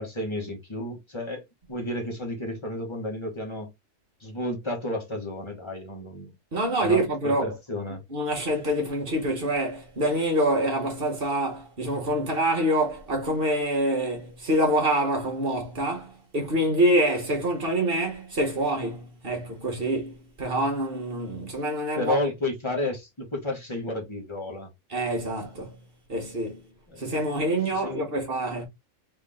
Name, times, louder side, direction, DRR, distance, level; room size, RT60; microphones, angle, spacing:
voice 1, 0.0-1.4 1.7-3.7 4.2-6.3 6.8-8.0 21.9-24.7 26.9-27.1 27.7-28.1, left 2 dB, 20° left, 1.5 m, -32 dB
voice 2, 6.5-7.6 8.1-22.2 24.9-25.8 26.1-26.6 27.0-28.7, right 1 dB, 40° right, 1.5 m, -26 dB
3.7 x 3.4 x 3.6 m
omnidirectional pair, 1.5 m